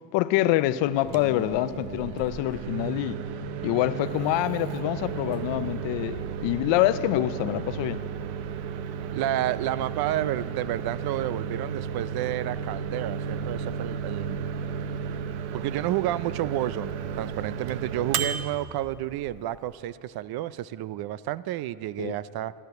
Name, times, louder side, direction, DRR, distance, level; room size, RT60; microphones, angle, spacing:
voice 1, 0.1-3.2 3.6-8.0 22.0-22.2, left 14 dB, 70° left, 0.8 m, -26 dB
Microwave oven, 0.9-19.7, right 7 dB, 85° right, 1.1 m, -34 dB
voice 2, 9.1-14.5 15.5-22.5, right 13 dB, 55° right, 0.6 m, -30 dB
13.5 x 13.0 x 7.8 m
cardioid pair, 110°, 46 cm